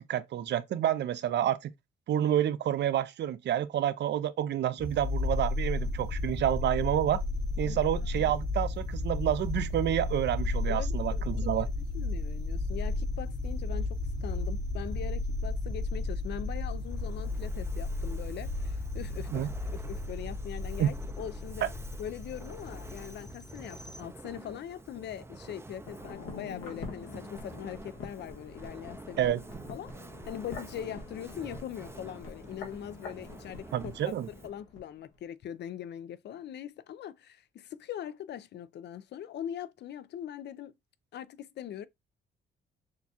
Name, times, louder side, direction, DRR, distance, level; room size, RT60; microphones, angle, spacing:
voice 1, 0.0-1.7 2.1-7.2 7.6-11.7 19.3-19.5 20.8-20.9 21.6-21.7 29.2-29.4 33.7-34.3, right 11 dB, 60° right, 0.5 m, -29 dB
sound 1, 4.8-24.0, left 2 dB, 20° left, 0.8 m, -33 dB
voice 2, 10.7-11.2 11.9-21.7 22.0-29.4 29.7-29.9 30.3-40.7 41.1-41.9, left 10 dB, 60° left, 0.5 m, -41 dB
Fire, 16.7-34.7, right 2 dB, 15° right, 0.5 m, -49 dB
sound 2, 25.8-34.9 35.1-35.2, left 3 dB, 90° left, 1.5 m, -46 dB
6.4 x 2.3 x 2.7 m
cardioid pair, 90°, 20 cm